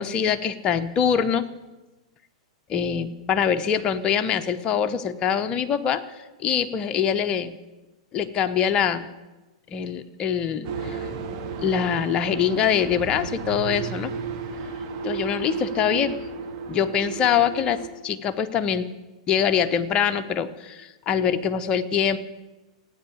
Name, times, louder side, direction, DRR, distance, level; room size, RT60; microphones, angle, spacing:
voice 1, 0.0-1.4 2.7-7.6 8.1-9.1 9.7-11.0 11.6-14.1 15.0-16.2 16.7-18.9 19.3-22.2, left 8 dB, 30° left, 9 dB, 1.1 m, -24 dB
sound 1, 10.6-17.9, right 5 dB, 50° right, 2.8 m, -33 dB
15.0 x 9.9 x 8.7 m, 1.1 s
hypercardioid pair, 110°, 3 cm